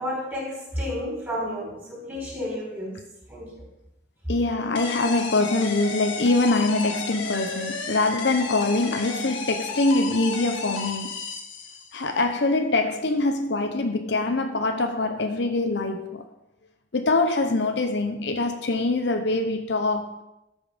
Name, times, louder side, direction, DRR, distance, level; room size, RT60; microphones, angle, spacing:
voice 1, 0.0-3.0 3.3-3.6, equal, 10° right, 4.6 m, -31 dB
voice 2, 4.3-11.2 11.9-16.3 16.9-20.2, left 2 dB, 65° left, 0.8 m, -24 dB
sound 1, 4.8-12.1, left 4 dB, 80° left, 1.6 m, -33 dB
13.5 x 5.5 x 5.2 m
head